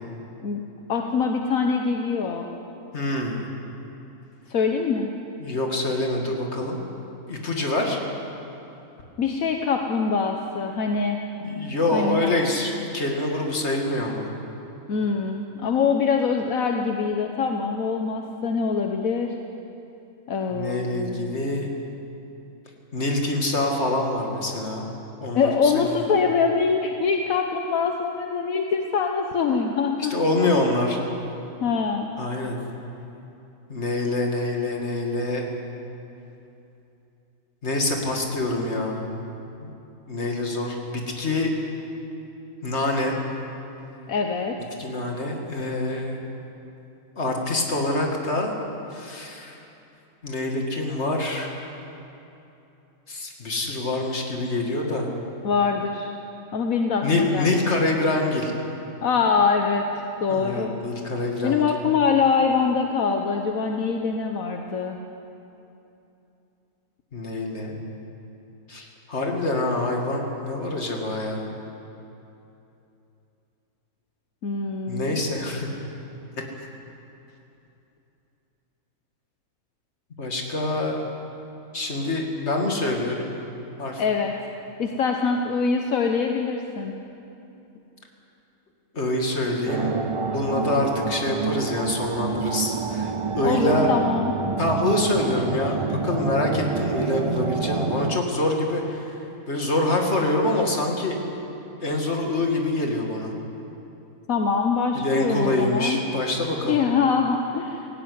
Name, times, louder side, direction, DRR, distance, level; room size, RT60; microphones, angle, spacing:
voice 1, 0.9-2.5 4.5-5.1 9.2-11.2 11.9-12.4 14.9-19.3 20.3-21.1 25.3-30.5 31.6-32.1 44.1-44.6 55.4-56.1 56.5-57.6 59.0-59.8 60.2-60.7 61.4-65.0 74.4-75.2 84.0-84.3 84.8-86.9 93.4-94.3 104.3-106.0 106.6-107.9, left 5 dB, 75° left, 3 dB, 1.5 m, -24 dB
voice 2, 2.9-3.4 5.4-6.8 7.3-8.0 11.4-14.3 20.5-21.7 22.9-24.8 25.2-26.0 30.1-31.0 32.2-32.6 33.7-35.5 37.6-39.1 39.6-39.7 40.1-41.6 42.6-43.2 44.8-46.2 47.2-48.5 48.9-49.6 50.2-51.5 53.1-55.1 57.0-58.5 60.3-61.7 67.1-67.8 68.7-71.5 74.9-75.7 76.6-76.7 80.2-81.0 81.7-83.3 83.8-84.0 88.9-90.0 90.3-93.9 94.6-99.2 99.5-101.2 101.8-103.3 105.0-106.8, left 2 dB, 50° left, 1 dB, 2.7 m, -25 dB
sound 1, 89.7-98.2, right 5 dB, 40° right, 0.4 m, -28 dB
17.0 x 17.0 x 9.6 m, 2.8 s
omnidirectional pair, 1.5 m